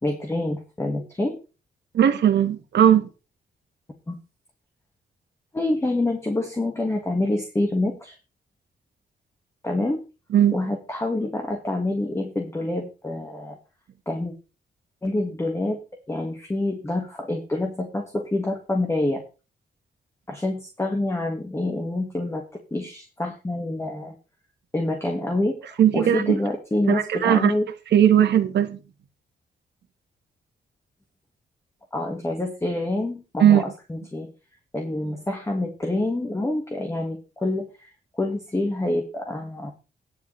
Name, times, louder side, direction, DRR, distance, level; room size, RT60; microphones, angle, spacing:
voice 1, 0.0-1.4 4.1-4.2 5.5-8.2 9.6-10.0 10.5-13.6 14.1-14.3 15.0-15.8 16.1-19.2 20.3-24.2 24.7-27.7 31.9-34.3 34.7-39.7, left 2 dB, 15° left, 1.9 m, -27 dB
voice 2, 1.9-3.1 10.3-10.6 25.8-26.4 26.9-27.5 27.9-28.8 33.4-33.6, right 10 dB, 85° right, 1.6 m, -18 dB
11.5 x 10.5 x 3.3 m
wide cardioid pair, 125°, 17 cm